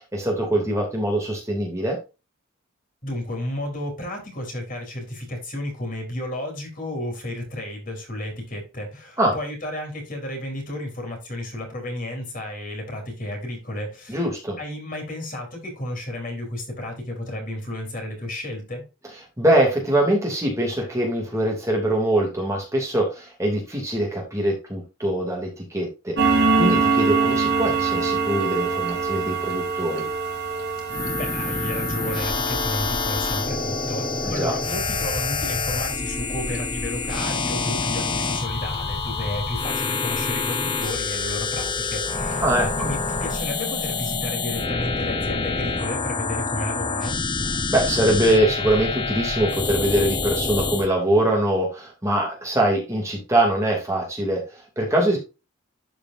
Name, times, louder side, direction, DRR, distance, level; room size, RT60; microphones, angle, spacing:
voice 1, 0.0-2.0 9.2-9.3 14.1-14.6 19.4-30.0 34.2-34.5 42.4-42.7 47.7-55.2, right 1 dB, 15° right, -1 dB, 2.6 m, -23 dB
voice 2, 3.0-14.2 14.6-18.8 31.2-47.2, left 1 dB, 40° left, 2 dB, 3.8 m, -32 dB
sound 1, 26.2-41.3 41.6-41.9 42.3-42.4 42.8-42.9 43.4-43.5 43.8-43.9, right 4 dB, 55° right, 3.5 m, -26 dB
sound 2, 30.9-50.9, left 4 dB, 25° left, 0.9 m, -27 dB
12.0 x 5.2 x 2.6 m, 0.28 s
head